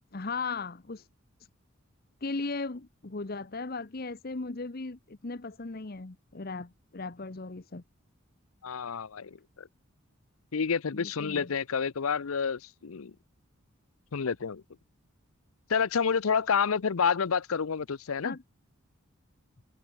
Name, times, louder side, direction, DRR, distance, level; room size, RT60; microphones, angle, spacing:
voice 1, 0.1-1.1 2.2-7.8 10.9-11.5 18.2-18.4, left 3 dB, 45° left, 0.9 m, -37 dB
voice 2, 8.6-9.7 10.5-13.1 14.1-14.6 15.7-18.4, left 6 dB, 85° left, 0.6 m, -29 dB
head